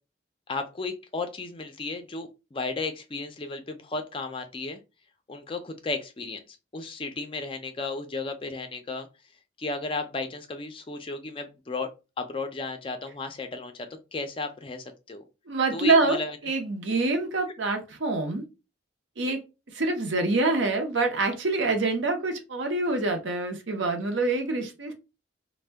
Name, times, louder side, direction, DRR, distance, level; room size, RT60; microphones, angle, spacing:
voice 1, 0.5-4.8 5.3-9.1 9.6-11.9 12.2-15.2 15.7-16.4, left 3 dB, 25° left, 7 dB, 0.4 m, -34 dB
voice 2, 15.5-18.5 19.2-19.4 19.7-24.9, right 3 dB, 75° right, 5 dB, 0.7 m, -26 dB
2.6 x 2.1 x 3.3 m, 0.28 s
head